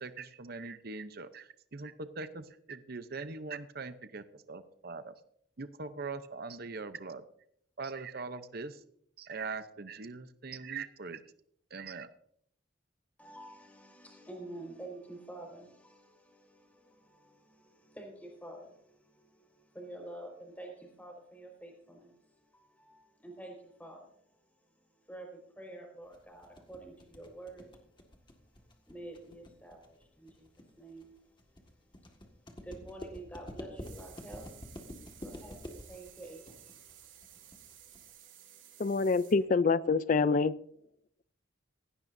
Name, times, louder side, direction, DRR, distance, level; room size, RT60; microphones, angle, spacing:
voice 1, 0.0-5.1 5.6-7.2 7.8-8.8 9.2-11.2 11.7-12.1, right 4 dB, 50° right, 11 dB, 0.7 m, -41 dB
voice 2, 13.2-28.0 28.4-39.1, right 1 dB, 10° left, 1 dB, 4.8 m, -50 dB
sound 1, 26.1-38.1, left 1 dB, 25° left, 1.8 m, -48 dB
sound 2, 33.8-39.4, right 11 dB, 85° right, 2.6 m, -55 dB
voice 3, 38.8-40.5, left 4 dB, 40° left, 17 dB, 0.4 m, -26 dB
17.0 x 16.0 x 2.7 m, 0.68 s
head